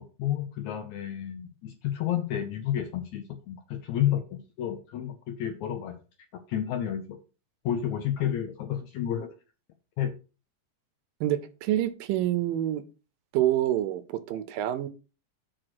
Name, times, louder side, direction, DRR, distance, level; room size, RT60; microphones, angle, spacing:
voice 1, 0.2-5.9 6.5-7.2 7.6-9.3 10.0-10.2, left 10 dB, 75° left, 6 dB, 1.8 m, -30 dB
voice 2, 11.2-12.8 13.3-14.9, right 13 dB, 80° right, 13 dB, 2.3 m, -27 dB
7.8 x 4.4 x 6.0 m, 0.33 s
omnidirectional pair, 4.1 m